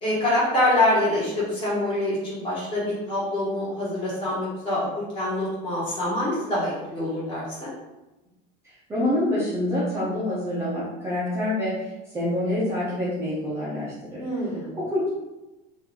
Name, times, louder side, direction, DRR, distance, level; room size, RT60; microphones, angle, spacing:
voice 1, 0.0-4.9 5.1-7.7 14.2-14.8, left 1 dB, 25° left, -8 dB, 1.4 m, -25 dB
voice 2, 8.9-11.8 12.1-14.2 14.7-15.1, left 1 dB, 10° right, -9 dB, 0.5 m, -26 dB
2.9 x 2.5 x 3.7 m, 1.0 s
cardioid pair, 180°, 20 cm